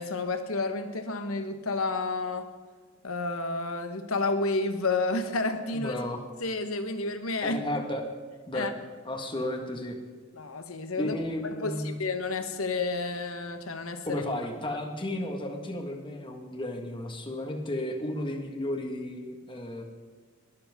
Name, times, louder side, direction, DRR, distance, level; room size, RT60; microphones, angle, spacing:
voice 1, 0.0-2.5 3.0-5.9 6.4-7.6 8.5-8.7 10.3-11.1 11.6-14.2, left 3 dB, 90° left, 8 dB, 1.3 m, -30 dB
voice 2, 5.7-6.2 7.4-8.0 8.5-8.7 9.0-10.0 11.0-12.0 14.1-19.8, left 1 dB, 25° left, 3 dB, 1.7 m, -33 dB
20.5 x 13.0 x 3.7 m, 1.5 s
head